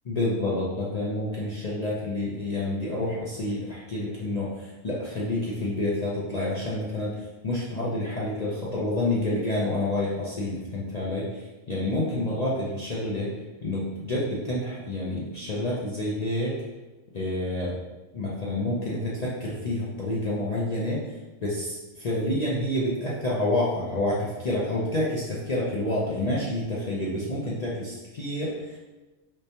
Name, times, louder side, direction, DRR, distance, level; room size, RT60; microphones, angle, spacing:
voice 1, 0.0-7.1 7.4-11.3 11.7-13.3 13.6-16.6 17.1-17.7 18.1-21.0 21.4-28.8, left 1 dB, 50° left, -7 dB, 0.4 m, -28 dB
3.3 x 3.1 x 2.8 m, 1.1 s
omnidirectional pair, 1.4 m